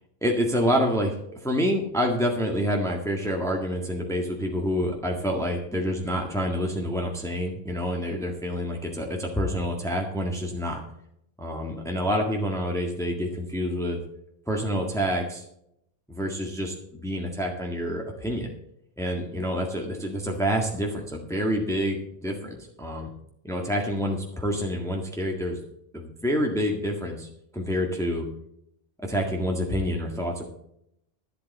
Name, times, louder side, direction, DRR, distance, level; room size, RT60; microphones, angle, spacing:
voice 1, 0.2-10.8 11.4-14.0 14.5-15.4 16.1-18.5 19.0-23.1 23.4-25.6 25.9-27.3 27.5-28.3 29.0-30.4, equal, 5° left, 0 dB, 1.7 m, -27 dB
12.0 x 11.5 x 4.2 m, 0.75 s
omnidirectional pair, 1.1 m